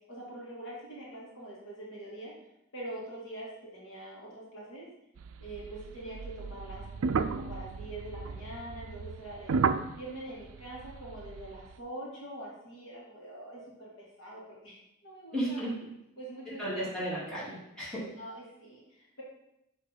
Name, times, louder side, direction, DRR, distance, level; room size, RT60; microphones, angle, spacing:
voice 1, 0.1-2.3 2.7-4.9 5.4-9.6 10.0-15.7 16.2-16.9 18.2-19.2, right 1 dB, 65° left, -5 dB, 2.1 m, -44 dB
sound 1, 5.2-11.7, right 5 dB, 85° right, 0.4 m, -34 dB
voice 2, 15.3-15.9 16.6-18.0, right 1 dB, 5° left, -9 dB, 2.4 m, -34 dB
6.4 x 3.5 x 5.1 m, 0.85 s
head